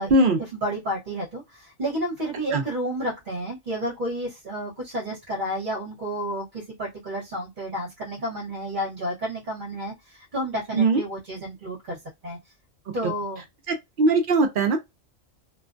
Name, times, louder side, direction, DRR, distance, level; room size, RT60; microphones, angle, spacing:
voice 1, 0.5-12.0 12.2-12.4 12.9-13.4, right 1 dB, 40° right, 1.1 m, -31 dB
voice 2, 13.7-14.8, right 2 dB, 55° right, 0.6 m, -20 dB
2.5 x 2.1 x 2.5 m
omnidirectional pair, 1.3 m